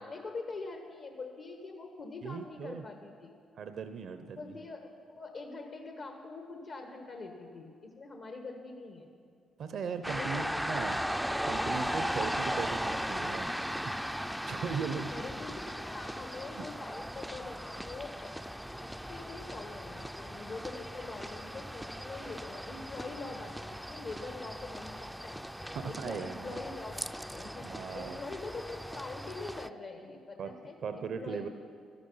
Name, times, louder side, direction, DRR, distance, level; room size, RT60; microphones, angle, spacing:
voice 1, 0.0-3.3 4.3-9.1 10.0-10.6 15.1-18.3 19.1-31.5, left 3 dB, 65° left, 3 dB, 1.4 m, -44 dB
voice 2, 2.2-2.8 3.6-4.6 9.6-11.0 11.4-13.8 14.1-15.1 25.7-26.6 27.6-28.2 30.4-30.5 30.8-31.5, right 6 dB, 65° right, 9 dB, 0.6 m, -38 dB
sound 1, 10.0-29.7, equal, ahead, 0.4 m, -37 dB
12.5 x 12.0 x 5.6 m, 2.3 s
supercardioid pair, 55°, 0 cm